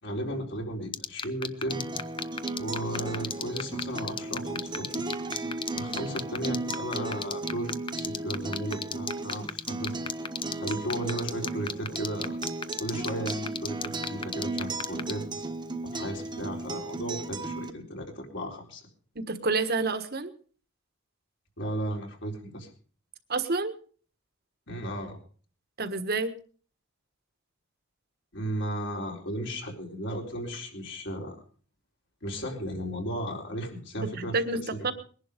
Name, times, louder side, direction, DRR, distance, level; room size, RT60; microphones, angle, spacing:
voice 1, 0.0-1.9 2.6-5.0 5.7-10.1 10.6-12.4 12.8-15.2 15.8-18.8 21.6-22.7 24.7-25.2 28.3-31.4 32.2-34.7, right 1 dB, 60° left, 1 dB, 4.1 m, -35 dB
sound 1, 0.9-15.1, left 6 dB, 25° left, 0.7 m, -31 dB
Acoustic guitar, 1.7-17.7, right 2 dB, 20° right, 1.3 m, -35 dB
voice 2, 19.1-20.3 23.3-23.7 25.8-26.3 34.0-34.9, right 3 dB, 50° right, 10 dB, 1.5 m, -29 dB
21.0 x 11.0 x 5.2 m, 0.43 s
head